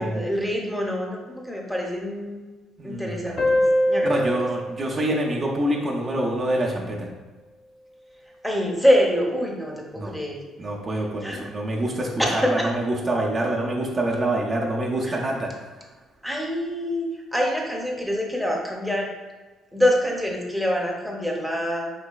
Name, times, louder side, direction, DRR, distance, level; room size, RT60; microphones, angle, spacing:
voice 1, 0.0-2.4 2.8-4.3 8.4-10.4 11.2-11.4 12.2-12.7 15.0-15.2 16.2-17.1 17.3-19.1 19.7-21.9, equal, ahead, -1 dB, 0.7 m, -25 dB
voice 2, 2.8-3.4 4.0-7.1 9.9-10.2 10.6-15.5, right 1 dB, 40° right, -2 dB, 0.5 m, -26 dB
sound 1, 3.4-6.5, equal, 40° left, 0.5 m, -25 dB
4.0 x 3.0 x 2.3 m, 1.3 s
cardioid pair, 85°, 0 cm